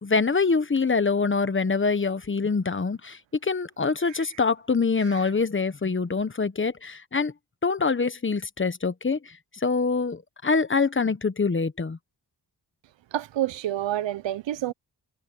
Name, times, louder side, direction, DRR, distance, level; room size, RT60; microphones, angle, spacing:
voice 1, 0.0-7.3 7.6-12.0, left 4 dB, 30° left, 1.2 m, -25 dB
voice 2, 13.1-14.7, right 13 dB, 85° right, 0.8 m, -28 dB
cardioid pair, 85°, 43 cm